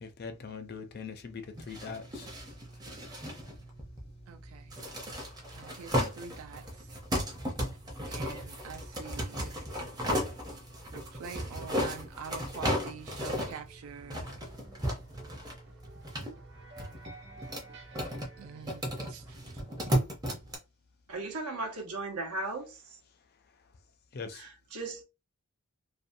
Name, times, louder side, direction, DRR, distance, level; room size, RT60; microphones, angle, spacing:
voice 1, 0.0-2.3 24.1-24.4, left 5 dB, 45° left, 0.4 m, -41 dB
sound 1, 1.5-20.5, equal, 15° right, 0.6 m, -35 dB
voice 2, 4.3-4.8 5.5-7.0 8.0-9.5 10.9-14.3 17.7-17.8 18.4-19.6, right 6 dB, 70° right, 0.3 m, -46 dB
sound 2, 13.4-18.9, right 3 dB, 50° right, 1.0 m, -54 dB
voice 3, 21.1-22.8 24.3-25.0, right 2 dB, 85° right, 0.9 m, -37 dB
2.6 x 2.2 x 2.6 m
head